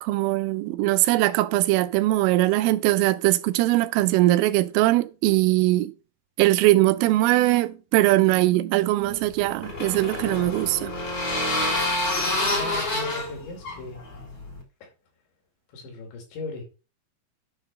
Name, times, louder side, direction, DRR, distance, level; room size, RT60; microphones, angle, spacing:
voice 1, 0.0-5.9 6.4-10.9, right 17 dB, 90° right, 3.3 m, -21 dB
sound 1, 9.1-14.6, left 2 dB, 25° left, 2.7 m, -28 dB
voice 2, 12.5-14.0 14.8-14.9 15.7-16.7, left 2 dB, 65° left, 4.8 m, -38 dB
10.5 x 3.8 x 6.3 m
omnidirectional pair, 5.7 m